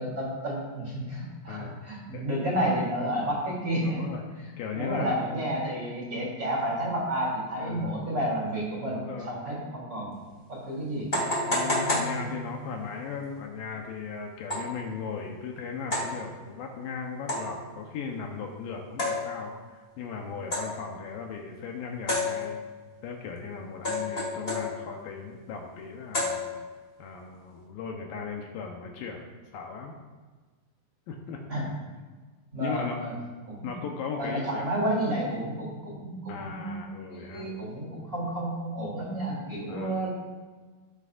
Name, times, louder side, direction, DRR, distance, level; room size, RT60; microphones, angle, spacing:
voice 1, 0.0-4.0 4.7-10.1 10.5-11.1 31.5-31.7 32.5-33.1 33.5-33.7 34.2-36.8 37.1-40.1, right 1 dB, 20° right, -5 dB, 3.7 m, -31 dB
voice 2, 1.5-1.8 2.1-2.2 3.8-4.2 4.6-5.3 7.6-8.0 8.9-9.6 11.5-22.6 23.0-26.5 27.0-29.9 31.1-31.4 32.6-33.0 33.6-34.7 36.3-37.5 39.7-40.1, left 5 dB, 75° left, 1 dB, 2.5 m, -37 dB
sound 1, 10.1-10.2 11.1-12.8 14.5-14.8 15.9-16.2 17.3-17.7 19.0-19.6 20.5-20.9 22.1-22.8 23.8-25.0 26.1-26.8, left 2 dB, 25° left, 1.2 m, -30 dB
18.0 x 8.7 x 2.5 m, 1.3 s
omnidirectional pair, 4.3 m